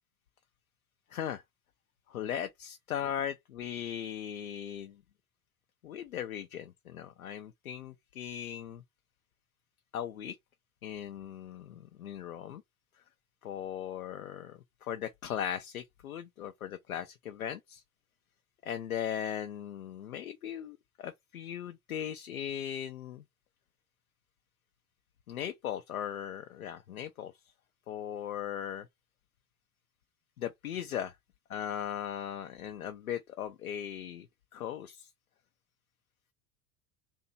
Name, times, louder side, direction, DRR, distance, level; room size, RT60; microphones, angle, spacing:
voice 1, 1.1-1.4 2.1-5.0 5.8-8.8 9.9-10.4 10.8-12.6 13.4-17.8 18.6-23.2 25.3-27.3 27.9-28.9 30.4-31.1 31.5-34.3 34.5-35.1, left 9 dB, 80° left, 0.5 m, -38 dB
2.8 x 2.6 x 4.0 m
figure-of-eight pair, 75°, 42 cm